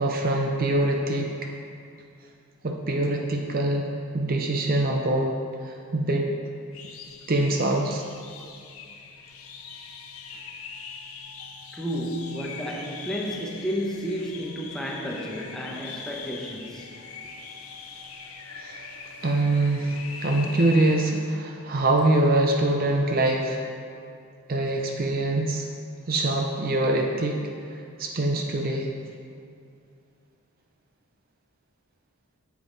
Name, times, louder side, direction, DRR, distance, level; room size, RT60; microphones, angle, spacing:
voice 1, 0.0-1.5 2.6-3.8 4.1-5.3 5.6-6.3 7.3-8.0 18.5-23.6 24.5-25.7 26.1-27.4 27.7-28.9, right 2 dB, 40° right, 1 dB, 0.6 m, -24 dB
sound 1, 6.7-21.0, left 5 dB, 75° left, 0.8 m, -41 dB
voice 2, 11.7-16.9, equal, 5° left, -2 dB, 0.9 m, -32 dB
9.6 x 7.3 x 4.0 m, 2.4 s
head